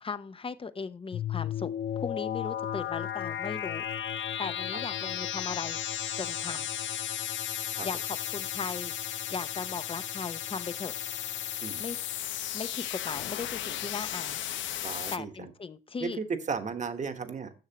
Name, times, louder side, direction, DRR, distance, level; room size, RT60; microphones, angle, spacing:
voice 1, 0.0-3.8 4.4-5.8 6.2-6.7 7.8-8.9 9.3-10.9 11.8-12.0 12.5-14.4 15.1-16.2, left 5 dB, 25° left, 0.7 m, -37 dB
sound 1, 1.1-15.2, left 10 dB, 70° left, 0.6 m, -34 dB
voice 2, 14.8-15.3 16.0-17.5, right 5 dB, 40° right, 1.3 m, -34 dB
10.5 x 6.5 x 2.9 m
cardioid pair, 90°, 20 cm